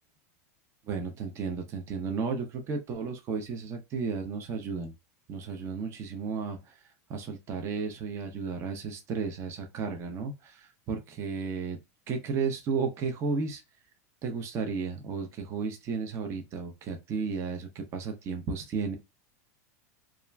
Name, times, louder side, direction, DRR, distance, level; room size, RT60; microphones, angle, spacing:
voice 1, 0.9-4.9 5.3-6.8 7.1-11.8 12.1-13.6 14.2-19.0, right 5 dB, 35° right, 0.5 m, -33 dB
2.4 x 2.1 x 3.1 m
supercardioid pair, 130°, 8 cm